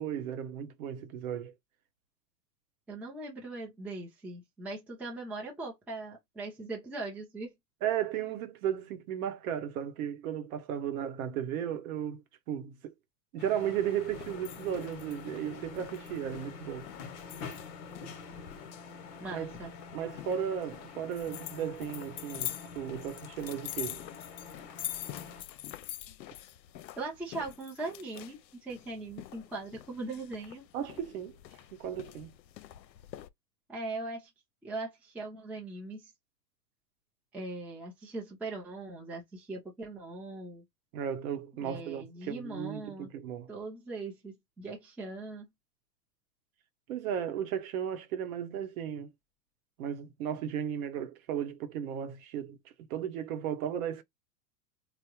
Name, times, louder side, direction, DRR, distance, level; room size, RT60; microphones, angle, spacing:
voice 1, 0.0-1.5 7.8-12.9 13.3-16.9 19.3-19.5 19.9-24.0 30.7-31.4 31.7-32.4 40.9-43.5 46.9-49.1 49.8-52.6 52.9-54.0, right 9 dB, 55° right, 0.8 m, -35 dB
voice 2, 2.9-7.5 19.2-19.7 27.0-30.7 33.7-34.3 34.6-36.1 37.3-40.6 41.5-43.1 43.5-45.5, right 2 dB, 5° right, 0.5 m, -40 dB
sound 1, 13.4-25.4, left 5 dB, 45° left, 1.0 m, -46 dB
sound 2, 14.1-33.3, left 13 dB, 85° left, 0.6 m, -45 dB
3.5 x 2.1 x 2.9 m
hypercardioid pair, 125°, 49 cm